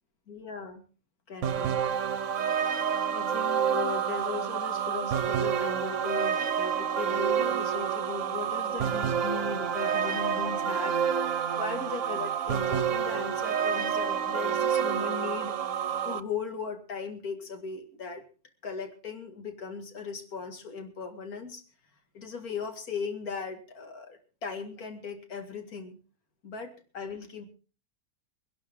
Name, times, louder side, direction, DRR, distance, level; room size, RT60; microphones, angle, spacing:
voice 1, 0.3-0.8 1.3-1.8 3.1-11.0 11.6-18.2 18.6-21.6 22.1-26.0 26.4-27.5, left 5 dB, 60° left, 6 dB, 2.6 m, -38 dB
sound 1, 1.4-16.2, right 8 dB, 55° right, 1.1 m, -28 dB
23.5 x 11.5 x 3.7 m, 0.36 s
omnidirectional pair, 1.8 m